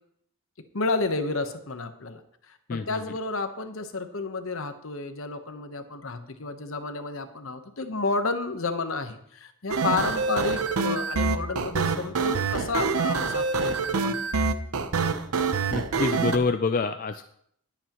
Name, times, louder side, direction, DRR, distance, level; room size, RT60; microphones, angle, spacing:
voice 1, 0.7-2.2 2.5-14.2, left 3 dB, 65° left, 8 dB, 1.0 m, -31 dB
voice 2, 2.7-3.0 15.7-17.2, left 4 dB, 40° left, 8 dB, 0.3 m, -26 dB
sound 1, 9.7-16.4, right 4 dB, 85° right, 0.8 m, -26 dB
19.0 x 8.1 x 3.0 m, 0.69 s
head